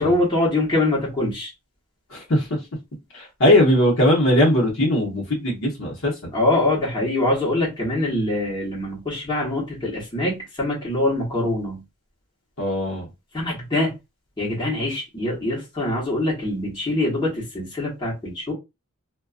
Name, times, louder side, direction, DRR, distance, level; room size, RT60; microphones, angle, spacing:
voice 1, 0.0-1.5 6.3-11.8 13.3-13.9 14.4-18.5, left 2 dB, 20° left, 1.0 m, -24 dB
voice 2, 2.1-2.5 3.1-6.3 12.6-13.1, left 1 dB, 55° left, 0.8 m, -19 dB
2.4 x 2.2 x 2.3 m
head